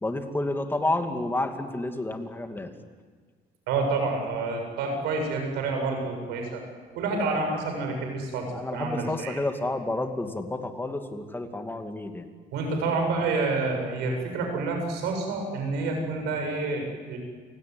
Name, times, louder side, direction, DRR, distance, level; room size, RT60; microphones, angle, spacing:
voice 1, 0.0-2.7 8.5-12.2, left 2 dB, 10° left, 6 dB, 2.5 m, -30 dB
voice 2, 3.7-6.6 6.9-9.4 12.5-17.2, right 3 dB, 90° right, 3 dB, 7.5 m, -28 dB
29.5 x 18.0 x 9.7 m, 1.5 s
cardioid pair, 110°, 17 cm